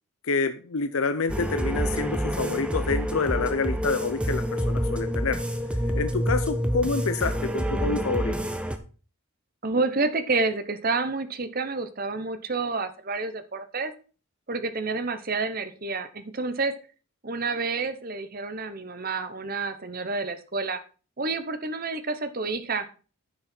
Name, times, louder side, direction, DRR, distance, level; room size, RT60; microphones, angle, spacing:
voice 1, 0.3-5.4 5.9-8.3, left 4 dB, 70° left, 10 dB, 0.7 m, -27 dB
sound 1, 1.3-8.8, equal, 5° right, 0.7 m, -27 dB
voice 2, 9.6-13.9 14.5-16.7 17.2-20.8 21.2-22.8, right 3 dB, 40° right, 10 dB, 0.9 m, -29 dB
10.0 x 6.4 x 4.4 m, 0.36 s
head